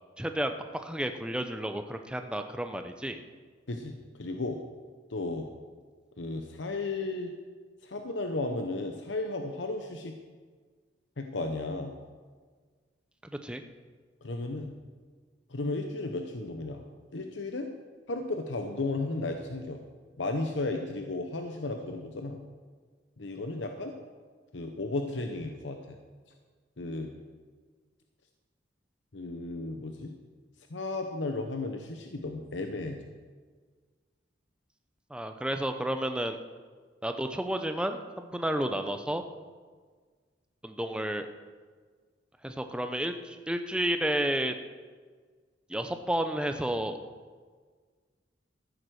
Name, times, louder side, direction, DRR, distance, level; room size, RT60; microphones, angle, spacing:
voice 1, 0.2-0.5 0.8-3.2 13.4-13.6 35.1-36.4 37.0-39.2 40.6-41.3 42.4-44.6 45.7-47.0, right 1 dB, 5° right, 7 dB, 0.7 m, -31 dB
voice 2, 3.7-4.6 5.1-5.5 6.2-7.3 7.8-10.1 11.2-11.9 14.2-14.7 15.5-16.8 17.1-17.7 18.1-19.8 20.2-22.4 23.2-23.9 24.5-26.0 26.8-27.1 29.1-30.1 30.6-33.0, left 2 dB, 85° left, 5 dB, 0.9 m, -34 dB
14.0 x 7.9 x 6.4 m, 1.5 s
head